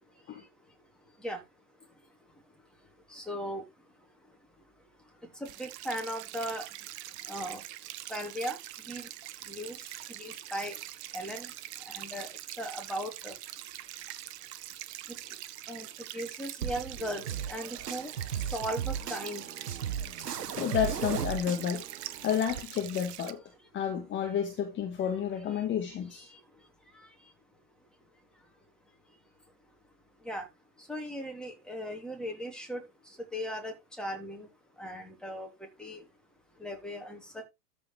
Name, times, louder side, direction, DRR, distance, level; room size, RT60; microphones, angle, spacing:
voice 1, 3.1-3.6 5.4-6.6 7.3-7.6 8.1-8.6 8.9-9.1 9.5-9.8 10.2-10.8 11.1-11.5 11.9-12.3 12.6-13.3 15.7-15.9 16.1-17.2 17.5-18.1 18.5-19.4 30.2-30.4 30.9-32.8 33.3-34.5 34.8-35.5 35.8-36.0 36.6-37.4, equal, ahead, 3.3 m, -37 dB
sound 1, 5.4-23.3, right 14 dB, 45° right, 1.2 m, -44 dB
sound 2, 16.6-22.6, right 8 dB, 80° right, 1.1 m, -36 dB
voice 2, 20.2-21.9 22.2-23.4 23.7-26.3, left 9 dB, 25° left, 1.7 m, -31 dB
13.5 x 5.2 x 3.4 m
hypercardioid pair, 110°, 47 cm